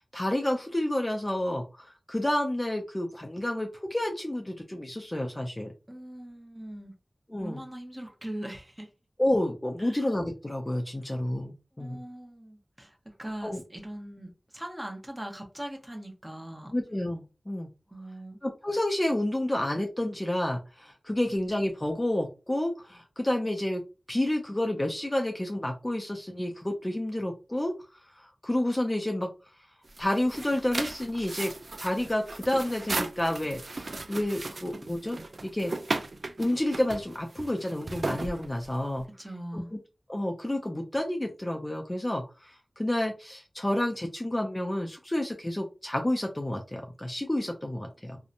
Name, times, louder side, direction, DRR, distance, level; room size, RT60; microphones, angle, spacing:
voice 1, 0.1-5.7 7.3-7.6 9.2-12.0 13.4-13.6 16.7-17.7 18.4-23.8 24.1-27.7 28.2-29.3 30.0-31.5 31.8-35.7 36.4-39.0 39.5-39.6 40.1-48.2, left 1 dB, 25° left, 0.4 m, -30 dB
voice 2, 5.9-6.9 7.3-8.9 9.8-10.1 11.7-16.7 17.9-18.4 38.7-39.7 48.0-48.1, right 1 dB, 15° right, 0.8 m, -41 dB
sound 1, 29.8-39.0, right 2 dB, 70° right, 0.3 m, -36 dB
2.7 x 2.1 x 2.5 m
wide cardioid pair, 65°, 0 cm